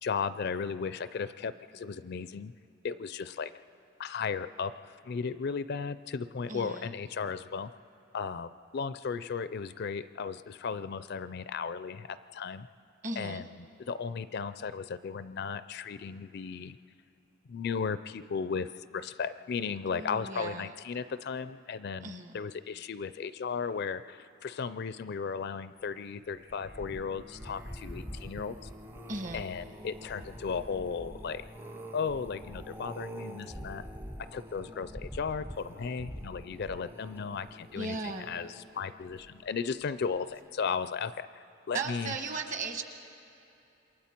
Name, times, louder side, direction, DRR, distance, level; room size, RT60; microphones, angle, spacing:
voice 1, 0.0-2.5 2.8-3.5 4.0-7.7 8.1-12.7 13.2-13.4 13.9-16.8 17.5-28.6 29.3-31.4 31.9-33.8 34.3-42.1, left 5 dB, 50° left, 13 dB, 0.4 m, -35 dB
voice 2, 6.5-6.9 13.0-13.4 19.9-20.7 22.0-22.4 29.1-29.5 37.7-38.3 41.7-42.8, right 3 dB, 40° right, 6 dB, 1.2 m, -36 dB
sound 1, 26.3-39.6 40.2-40.5 40.7-40.8, equal, 10° right, 0.6 m, -45 dB
27.5 x 22.5 x 4.4 m, 2.8 s
head